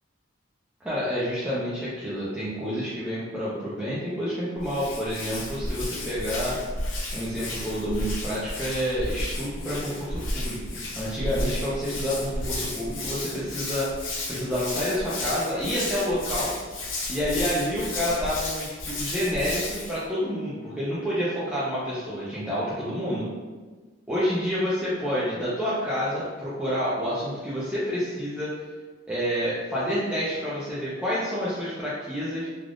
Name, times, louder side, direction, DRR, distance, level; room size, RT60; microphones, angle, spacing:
voice 1, 0.8-6.6 7.1-10.6 10.9-16.5 17.1-23.3 24.1-28.5 29.1-32.5, equal, 5° right, -10 dB, 0.5 m, -28 dB
Hands, 4.6-20.0, left 2 dB, 75° left, 0.6 m, -33 dB
3.4 x 2.4 x 2.4 m, 1.4 s
head